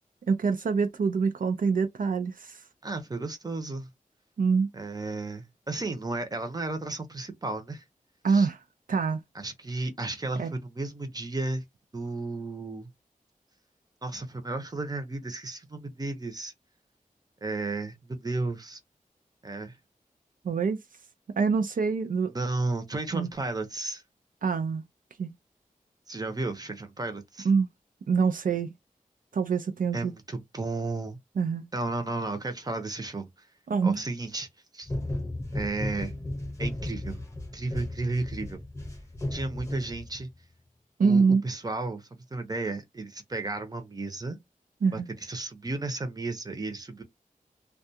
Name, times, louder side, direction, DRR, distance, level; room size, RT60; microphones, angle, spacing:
voice 1, 0.3-2.6 4.4-4.7 8.2-8.6 8.9-9.2 10.4-10.5 20.4-20.8 21.4-22.3 23.1-23.3 24.4-24.8 25.2-25.3 27.4-27.7 28.1-28.7 29.3-30.1 31.4-31.7 33.7-34.0 41.0-41.4 44.8-45.1, right 5 dB, 75° right, 0.4 m, -25 dB
voice 2, 2.8-3.9 4.7-7.8 8.3-8.5 9.3-11.6 11.9-12.9 14.0-16.5 17.4-18.8 19.4-19.8 22.3-24.0 26.1-27.5 29.9-31.2 31.7-33.3 33.8-34.5 34.7-34.9 35.5-36.1 36.6-37.2 37.5-38.6 39.3-40.3 41.0-44.4 44.9-47.0, right 2 dB, 25° right, 0.7 m, -33 dB
sound 1, 34.9-40.4, left 1 dB, 20° left, 0.8 m, -35 dB
2.3 x 2.3 x 2.7 m
wide cardioid pair, 80°, 14 cm